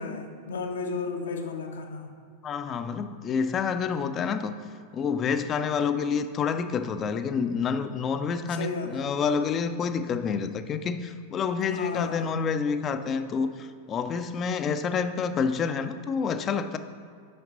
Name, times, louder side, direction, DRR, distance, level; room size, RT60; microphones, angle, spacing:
voice 1, 0.0-2.1 8.5-9.1 11.7-12.3, left 4 dB, 65° left, 4 dB, 0.8 m, -34 dB
voice 2, 2.4-4.6 4.9-16.8, left 6 dB, 30° left, 10 dB, 0.4 m, -28 dB
8.7 x 5.9 x 3.9 m, 2.3 s
figure-of-eight pair, 90°, 0 cm